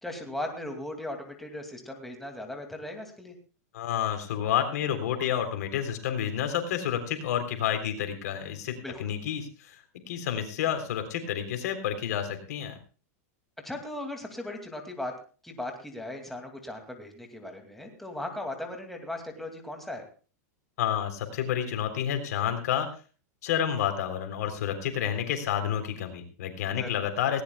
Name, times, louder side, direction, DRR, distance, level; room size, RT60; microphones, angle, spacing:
voice 1, 0.0-3.4 8.8-9.1 13.6-15.1 15.4-20.0 26.7-27.1, left 1 dB, ahead, 3 dB, 2.4 m, -38 dB
voice 2, 3.7-9.8 10.1-12.8 20.8-22.9 23.4-27.4, left 9 dB, 70° left, 7 dB, 3.5 m, -29 dB
19.0 x 17.5 x 2.3 m, 0.36 s
supercardioid pair, 135°, 9 cm